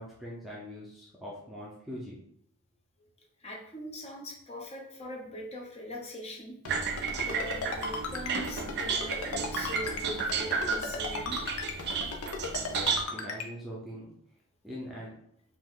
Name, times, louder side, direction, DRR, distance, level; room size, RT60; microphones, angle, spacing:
voice 1, 0.0-2.2 12.5-14.1 14.6-15.1, equal, ahead, -6 dB, 0.7 m, -42 dB
voice 2, 3.4-6.6 7.2-11.5, equal, 30° left, -1 dB, 1.0 m, -41 dB
Ringtone, 6.6-13.5, left 5 dB, 75° left, 0.7 m, -35 dB
sound 1, 6.7-13.0, right 5 dB, 50° right, 0.4 m, -32 dB
5.3 x 2.6 x 3.8 m, 0.69 s
head